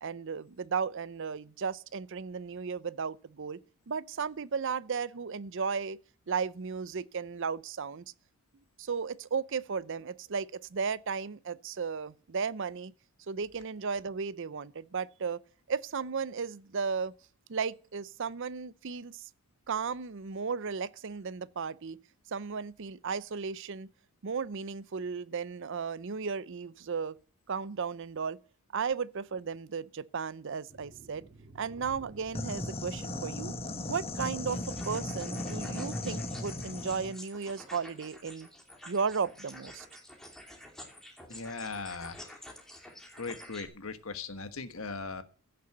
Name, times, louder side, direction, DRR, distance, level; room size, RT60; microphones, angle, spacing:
voice 1, 0.0-3.6 3.9-6.0 6.3-8.0 8.8-12.9 13.3-15.4 15.7-17.1 17.5-19.2 19.7-22.0 22.3-23.9 24.2-27.2 27.5-28.4 28.7-31.3 31.5-33.6 33.9-38.5 38.9-39.9, right 5 dB, 60° right, 0.6 m, -35 dB
sound 1, 30.7-35.9, right 2 dB, 35° right, 4.2 m, -51 dB
sound 2, 32.3-37.2, left 2 dB, 30° left, 1.3 m, -37 dB
sound 3, 34.5-43.6, left 1 dB, ahead, 2.8 m, -49 dB
voice 2, 41.3-42.3 43.2-45.2, left 4 dB, 75° left, 1.5 m, -39 dB
15.5 x 6.8 x 7.9 m
head